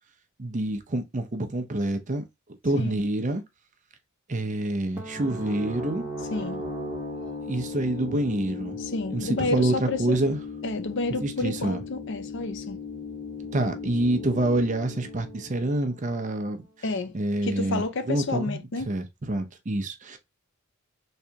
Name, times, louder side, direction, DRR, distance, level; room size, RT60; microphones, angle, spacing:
voice 1, 0.4-2.2 2.6-3.4 4.3-6.1 7.5-8.8 9.1-10.4 11.2-11.8 13.5-16.7 17.1-17.8 18.1-18.6 18.9-20.2, right 1 dB, 35° right, 0.6 m, -27 dB
sound 1, 5.0-16.5, left 3 dB, 10° right, 1.1 m, -37 dB
voice 2, 6.3-6.6 8.8-10.2 10.6-12.8 16.8-17.2 17.4-18.9, left 2 dB, 55° left, 0.6 m, -30 dB
3.6 x 3.2 x 2.8 m
head